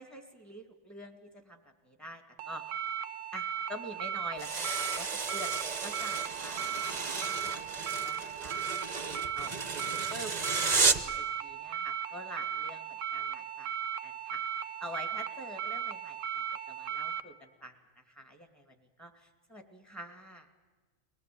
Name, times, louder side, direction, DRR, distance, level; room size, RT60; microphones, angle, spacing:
voice 1, 0.0-2.9 3.3-8.6 9.0-13.7 14.0-20.5, equal, ahead, 5 dB, 2.4 m, -47 dB
sound 1, 2.4-17.2, right 8 dB, 90° right, 1.3 m, -37 dB
sound 2, 4.4-11.2, right 4 dB, 35° right, 1.1 m, -33 dB
23.5 x 18.5 x 8.7 m, 1.3 s
omnidirectional pair, 1.3 m